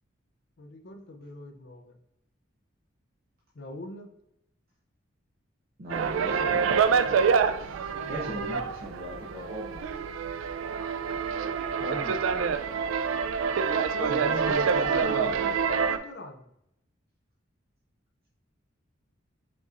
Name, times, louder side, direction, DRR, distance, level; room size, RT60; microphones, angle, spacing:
voice 1, 0.6-2.0 3.5-4.1 8.0-8.4 11.8-12.2 13.9-16.5, left 2 dB, 60° left, 6 dB, 0.5 m, -41 dB
voice 2, 5.8-7.2 7.6-10.1 11.8-12.6 14.1-15.6, equal, 50° right, -3 dB, 0.8 m, -39 dB
sound 1, 5.9-16.0, right 6 dB, 85° right, 0.3 m, -27 dB
5.1 x 4.0 x 2.5 m, 0.80 s
head